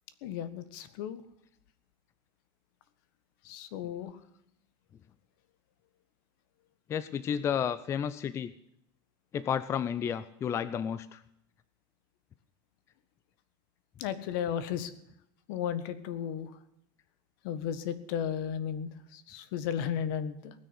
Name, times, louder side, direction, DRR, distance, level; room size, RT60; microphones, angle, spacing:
voice 1, 0.2-1.2 3.4-4.1 14.0-14.9 15.5-16.5 17.4-20.5, left 9 dB, 65° left, 13 dB, 1.5 m, -34 dB
voice 2, 6.9-8.5 9.3-11.2, left 8 dB, 25° left, 14 dB, 0.5 m, -31 dB
19.0 x 6.7 x 9.9 m, 0.75 s
supercardioid pair, 160°, 12 cm